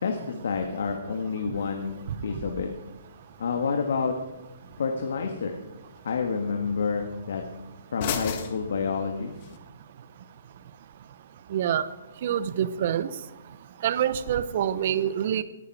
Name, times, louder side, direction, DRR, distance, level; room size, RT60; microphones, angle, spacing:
voice 1, 0.0-2.0 2.2-2.7 3.4-4.1 4.8-5.6 6.0-7.4 7.9-9.3, left 5 dB, 70° left, 4 dB, 1.8 m, -28 dB
sound 1, 1.6-9.6, left 7 dB, 35° left, 1.6 m, -40 dB
voice 2, 11.5-11.8 12.2-13.1 13.8-15.4, right 10 dB, 45° right, 15 dB, 0.8 m, -26 dB
18.5 x 10.5 x 4.9 m, 1.0 s
hypercardioid pair, 165°, 0 cm